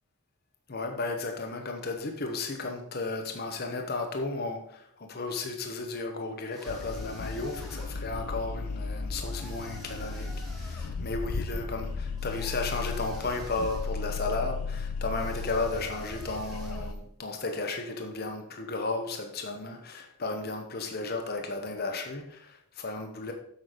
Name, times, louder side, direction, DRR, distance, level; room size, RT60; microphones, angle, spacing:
voice 1, 0.7-23.3, left 3 dB, 45° left, 0.9 m, -34 dB
sound 1, 6.5-8.1 9.2-11.0 12.2-14.0 15.1-17.0, equal, ahead, 1.7 m, -49 dB
sound 2, 6.7-16.9, left 4 dB, 90° left, 0.6 m, -35 dB
8.1 x 6.0 x 5.0 m
head